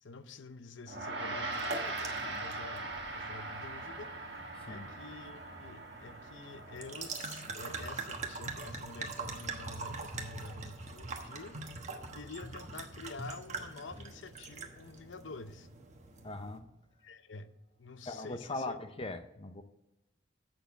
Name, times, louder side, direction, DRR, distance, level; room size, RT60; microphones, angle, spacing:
voice 1, 0.0-4.1 4.6-11.6 12.1-15.7 17.0-17.5 17.8-18.8, left 3 dB, 70° left, 0.7 m, -48 dB
Gong, 0.9-10.5, right 2 dB, 60° right, 1.6 m, -42 dB
sound 1, 1.5-16.6, right 3 dB, 40° right, 1.2 m, -44 dB
voice 2, 16.2-16.6 18.1-19.6, left 2 dB, 30° left, 0.6 m, -40 dB
7.8 x 6.7 x 7.8 m
head